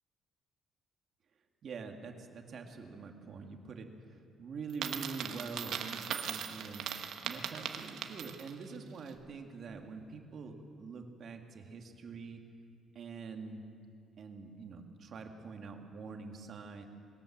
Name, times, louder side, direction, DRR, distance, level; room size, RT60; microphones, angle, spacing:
voice 1, 1.6-6.9 7.2-12.4 12.9-13.6 14.2-16.8, right 4 dB, 50° right, 4 dB, 2.1 m, -45 dB
Coin (dropping), 4.7-8.6, right 8 dB, 70° right, 1.3 m, -39 dB
21.5 x 18.0 x 7.4 m, 2.4 s
cardioid pair, 140°, 0 cm